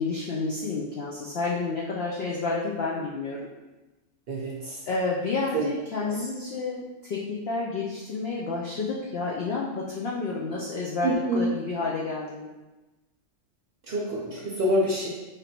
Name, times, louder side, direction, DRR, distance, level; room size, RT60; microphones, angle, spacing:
voice 1, 0.0-3.5 4.9-12.5, left 3 dB, 75° left, -4 dB, 0.5 m, -30 dB
voice 2, 4.3-4.8 5.5-5.6 6.0-6.1 11.0-11.5 13.9-15.1, equal, 55° right, -5 dB, 0.7 m, -26 dB
3.2 x 2.5 x 4.3 m, 1.1 s
omnidirectional pair, 1.6 m